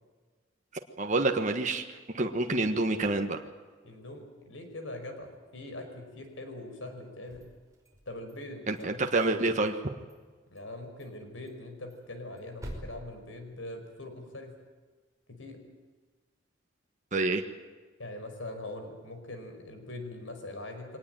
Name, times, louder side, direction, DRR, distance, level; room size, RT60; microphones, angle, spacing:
voice 1, 1.0-3.4 8.7-9.7 17.1-17.4, right 2 dB, 40° right, 4 dB, 1.4 m, -28 dB
voice 2, 3.8-7.5 8.1-9.3 10.5-14.5 15.3-15.6 18.0-21.0, left 2 dB, 85° left, 6 dB, 5.3 m, -42 dB
sound 1, 7.2-8.3 8.7-9.8 10.1-10.2 10.6-10.7 11.0-11.1 11.5-14.1, equal, 15° right, 5.3 m, -47 dB
23.5 x 19.0 x 9.1 m, 1.4 s
head